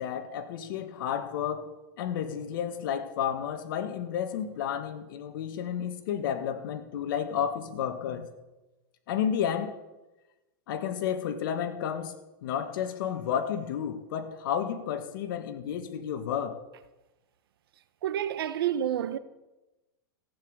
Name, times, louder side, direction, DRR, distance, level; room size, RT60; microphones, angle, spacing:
voice 1, 0.0-1.7 2.0-8.3 9.1-9.7 10.7-12.1 12.4-16.6, left 8 dB, 65° left, 1.9 m, -31 dB
voice 2, 18.0-19.2, right 10 dB, 85° right, 1.0 m, -29 dB
15.0 x 9.4 x 6.8 m
supercardioid pair, 145°, 12 cm